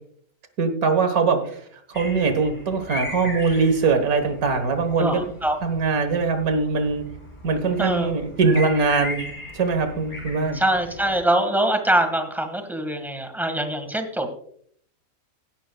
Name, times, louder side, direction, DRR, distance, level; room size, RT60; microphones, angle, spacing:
voice 1, 0.6-1.6 1.9-5.3 5.6-7.0 7.4-9.2 9.5-10.6, right 4 dB, 75° right, 8 dB, 1.8 m, -22 dB
sound 1, 1.9-11.2, left 2 dB, 20° left, 3.8 m, -38 dB
voice 2, 5.0-5.6 7.8-8.1 10.5-14.3, right 1 dB, ahead, 6 dB, 1.6 m, -23 dB
17.0 x 11.5 x 2.3 m, 0.63 s
omnidirectional pair, 1.5 m